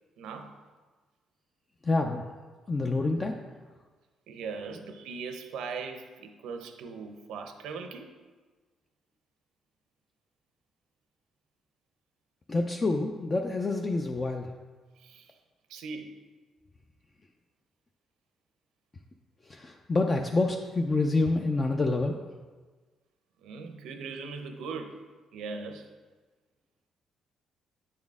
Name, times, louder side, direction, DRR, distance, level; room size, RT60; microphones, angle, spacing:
voice 1, 0.2-0.6 4.3-8.1 15.0-15.3 15.7-16.1 23.4-25.0 25.3-25.9, right 5 dB, 90° right, 6 dB, 0.6 m, -39 dB
voice 2, 1.8-2.2 2.7-3.4 12.5-14.5 19.5-22.2, left 2 dB, 30° left, 3 dB, 0.4 m, -27 dB
8.6 x 4.2 x 3.5 m, 1.3 s
cardioid pair, 90°, 0 cm